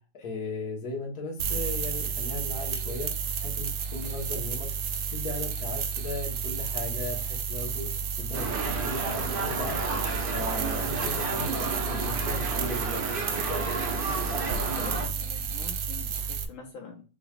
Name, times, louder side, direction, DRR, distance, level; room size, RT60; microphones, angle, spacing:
voice 1, 0.1-3.1 3.4-4.7 5.1-7.9 8.2-9.8 10.3-13.1, left 2 dB, 50° left, -2 dB, 1.7 m, -36 dB
sound 1, 1.4-16.4, right 6 dB, 75° right, 0.9 m, -32 dB
sound 2, 8.3-15.1, right 3 dB, 55° right, 0.6 m, -32 dB
voice 2, 14.2-17.0, left 3 dB, 75° left, 0 dB, 1.7 m, -45 dB
6.3 x 3.3 x 2.5 m, 0.34 s
omnidirectional pair, 2.3 m